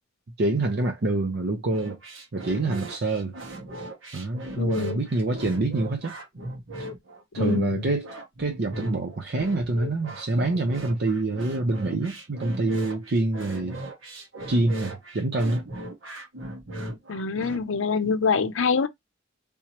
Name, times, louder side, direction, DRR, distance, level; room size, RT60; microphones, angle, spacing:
voice 1, 0.4-2.0 2.3-3.4 4.1-6.2 7.3-8.1 8.4-13.8 14.5-15.6, right 2 dB, 55° right, 0.6 m, -26 dB
sound 1, 1.6-17.6, right 1 dB, 75° right, 1.4 m, -38 dB
voice 2, 4.6-5.0 7.4-7.8 17.1-18.9, left 5 dB, 70° left, 0.6 m, -25 dB
3.5 x 2.9 x 2.9 m
head